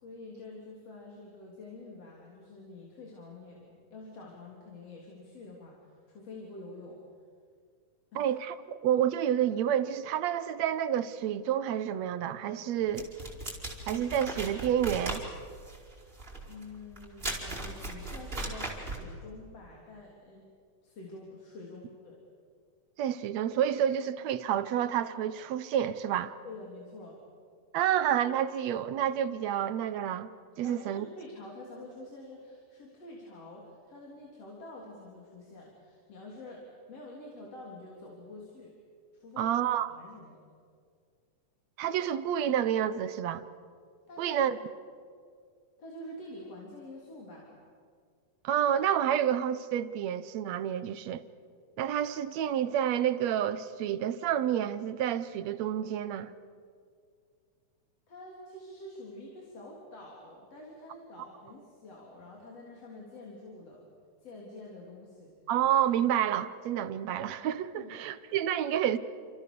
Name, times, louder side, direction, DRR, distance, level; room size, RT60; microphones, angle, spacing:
voice 1, 0.0-7.0 8.1-8.3 16.4-20.5 20.8-22.2 26.4-27.2 30.6-38.7 39.1-39.5 39.9-40.4 44.1-44.6 45.8-47.6 58.1-63.9 64.2-65.3 67.8-67.9, left 2 dB, 50° left, 4.4 m, -47 dB
voice 2, 8.2-13.1 13.9-15.2 23.0-26.4 27.7-30.3 30.6-31.1 39.4-39.9 41.8-43.4 44.2-44.6 48.4-51.2 51.8-56.3 65.5-69.0, right 10 dB, 70° right, 2.0 m, -29 dB
sound 1, 12.9-19.1, right 2 dB, 15° right, 5.0 m, -38 dB
29.5 x 27.5 x 6.9 m
omnidirectional pair, 3.5 m